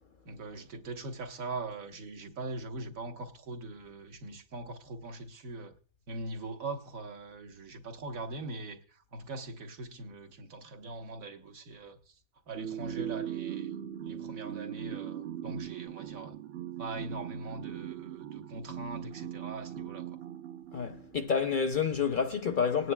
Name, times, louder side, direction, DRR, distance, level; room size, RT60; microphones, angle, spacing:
voice 1, 0.2-5.8 6.1-12.2 12.5-13.8 14.0-16.4 16.8-20.2, right 2 dB, 75° right, 1.5 m, -41 dB
sound 1, 12.6-21.3, right 11 dB, 60° right, 0.7 m, -40 dB
voice 2, 20.7-22.9, left 6 dB, 55° left, 0.6 m, -29 dB
20.5 x 9.5 x 2.2 m
omnidirectional pair, 1.5 m